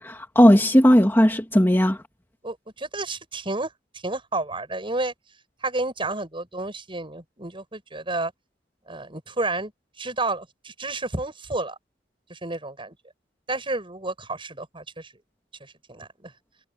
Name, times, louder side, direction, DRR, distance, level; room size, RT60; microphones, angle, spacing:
voice 1, 0.0-2.0, equal, 15° left, 2.3 m, -17 dB
voice 2, 2.4-5.1 5.6-8.3 8.9-9.7 10.0-11.8 12.3-13.0 13.5-15.1 15.6-16.3, right 2 dB, 30° right, 7.6 m, -31 dB
head